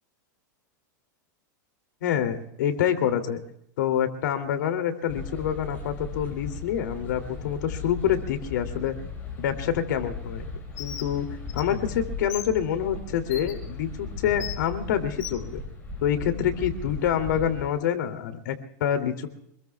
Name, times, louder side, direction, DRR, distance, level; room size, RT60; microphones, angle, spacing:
voice 1, 2.0-3.4 3.8-8.9 9.4-10.5 10.8-11.3 11.5-15.6 16.0-18.5 18.8-19.3, left 9 dB, 75° left, 7 dB, 2.8 m, -26 dB
sound 1, 5.1-17.7, left 4 dB, 15° left, 4.8 m, -37 dB
Bird, 10.8-11.1 11.5-11.6 12.3-12.5 13.3-13.5 14.4-14.6 15.2-15.4, left 10 dB, 50° left, 4.3 m, -36 dB
26.5 x 21.5 x 2.4 m, 0.72 s
supercardioid pair, 170°, 10 cm